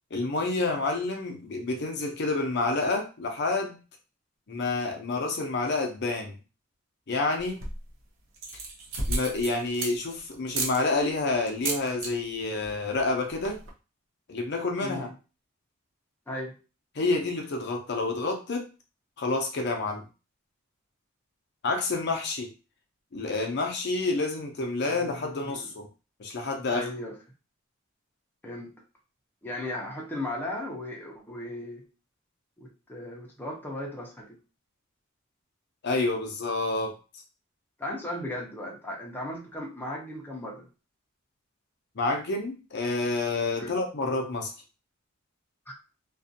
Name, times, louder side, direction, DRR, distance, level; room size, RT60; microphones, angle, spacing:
voice 1, 0.1-3.8 4.5-6.3 7.1-7.6 9.1-13.6 14.3-15.1 17.0-18.7 19.2-20.0 21.6-22.5 23.1-25.9 26.2-26.9 35.8-36.9 42.0-44.5, left 3 dB, 55° left, 3 dB, 0.5 m, -28 dB
sound 1, 7.4-7.9 8.3-10.1 10.5-10.8 11.5-12.1 12.4-12.7 13.0-13.1 13.3-13.7, right 2 dB, 80° right, 0.7 m, -32 dB
voice 2, 14.8-15.1 16.3-16.6 24.9-25.6 26.7-27.2 28.4-28.8 29.4-31.9 32.6-34.4 37.8-40.7 43.6-43.7, left 1 dB, 10° left, -2 dB, 0.6 m, -36 dB
2.5 x 2.3 x 2.6 m, 0.32 s
head